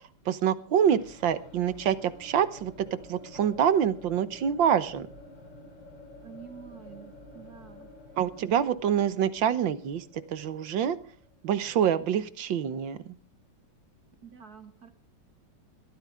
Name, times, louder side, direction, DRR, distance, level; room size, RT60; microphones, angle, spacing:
voice 1, 0.3-5.1 8.2-11.0 11.4-13.0, right 9 dB, 80° right, 14 dB, 1.8 m, -26 dB
sound 1, 0.9-12.7, left 1 dB, 80° left, 3.6 m, -51 dB
voice 2, 6.2-7.9 14.2-14.9, right 7 dB, 55° right, 8 dB, 2.1 m, -48 dB
22.0 x 14.5 x 3.6 m, 0.40 s
omnidirectional pair, 2.0 m